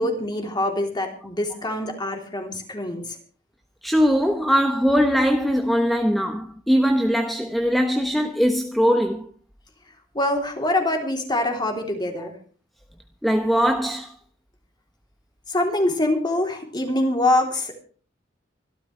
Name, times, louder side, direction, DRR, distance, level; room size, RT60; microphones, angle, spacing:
voice 1, 0.0-3.2 10.1-12.3 15.5-17.7, left 1 dB, 25° left, 3.3 m, -24 dB
voice 2, 3.8-9.2 13.2-14.1, equal, ahead, 1.0 m, -21 dB
25.0 x 12.5 x 3.3 m
head